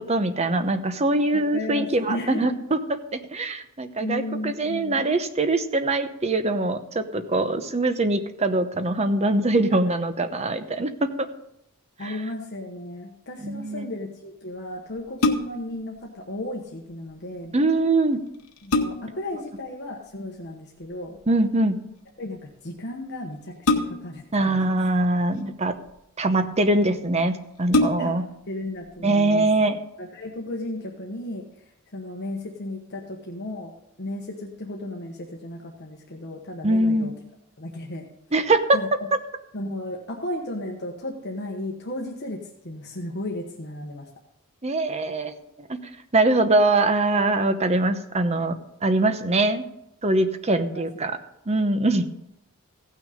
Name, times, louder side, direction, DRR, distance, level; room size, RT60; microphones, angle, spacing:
voice 1, 0.0-11.1 12.0-12.2 13.4-13.9 17.5-18.2 21.3-21.8 24.3-25.7 26.2-28.2 29.0-29.8 36.6-37.1 38.3-38.8 44.6-45.8 46.1-48.6 48.8-49.7 50.0-51.1 51.5-52.0, right 2 dB, 30° right, 9 dB, 0.8 m, -23 dB
voice 2, 1.2-2.6 4.0-5.1 12.0-17.5 18.6-21.2 22.2-24.8 28.0-29.5 30.0-37.1 37.6-38.1 38.7-38.9 39.5-44.1 49.0-49.3 50.5-50.9, left 1 dB, 50° left, 0 dB, 1.2 m, -35 dB
sound 1, 15.0-15.8 17.8-17.9 18.3-19.3 20.8-21.2 23.6-24.3 25.2-25.9 26.7-26.8 27.1-27.2 27.6-28.3 28.8-28.9, left 2 dB, 75° left, 1.1 m, -25 dB
16.0 x 6.3 x 5.0 m, 0.79 s
head